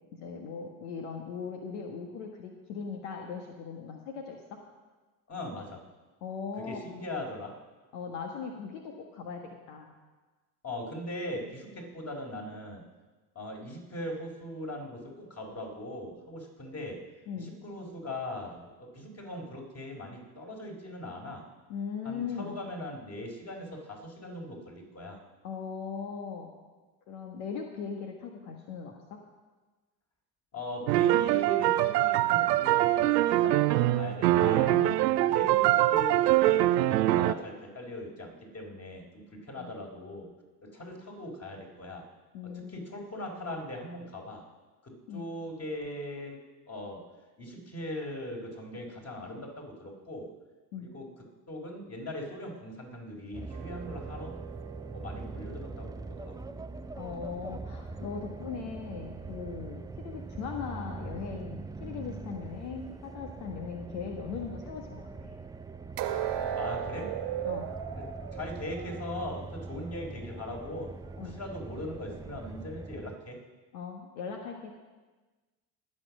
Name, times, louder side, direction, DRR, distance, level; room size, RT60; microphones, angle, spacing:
voice 1, 0.2-4.6 6.2-6.8 7.9-9.9 17.3-17.5 21.7-22.5 25.4-26.5 27.1-29.2 34.3-34.9 39.6-39.7 42.3-42.9 45.1-45.2 50.7-50.9 57.0-65.3 67.4-67.7 71.2-71.4 73.7-74.7, left 6 dB, 75° left, 2 dB, 1.6 m, -39 dB
voice 2, 5.3-5.8 6.6-7.5 10.6-12.8 13.3-17.0 17.4-21.4 22.0-25.2 30.5-34.6 35.2-40.3 40.7-42.0 42.5-44.4 44.8-46.4 46.7-47.0 47.4-50.3 50.8-51.1 51.5-54.3 54.9-56.4 66.6-67.1 68.3-70.9 71.2-73.4, left 1 dB, 30° left, 0 dB, 4.3 m, -40 dB
sound 1, 30.9-37.3, right 15 dB, 90° right, 0.6 m, -24 dB
sound 2, 53.3-73.2, right 3 dB, 10° right, 0.4 m, -42 dB
sound 3, 53.5-56.6 66.0-69.9 70.3-70.5 71.1-71.2, right 9 dB, 60° right, 1.4 m, -38 dB
19.5 x 7.1 x 6.2 m, 1.3 s
hypercardioid pair, 70°, 47 cm